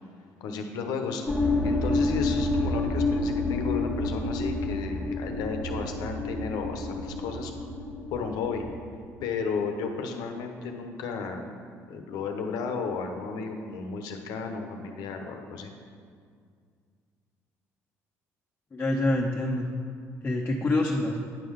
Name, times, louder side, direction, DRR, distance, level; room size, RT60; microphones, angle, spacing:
voice 1, 0.4-1.2 1.6-7.5 8.1-8.6 9.2-11.5 11.9-15.7, left 5 dB, 80° left, 4 dB, 0.9 m, -33 dB
sound 1, 1.3-8.8, left 2 dB, 5° left, 1.2 m, -29 dB
voice 2, 18.7-19.7 20.2-21.2, left 2 dB, 30° left, -1 dB, 0.8 m, -26 dB
9.4 x 3.7 x 6.4 m, 2.1 s
supercardioid pair, 80°, 7 cm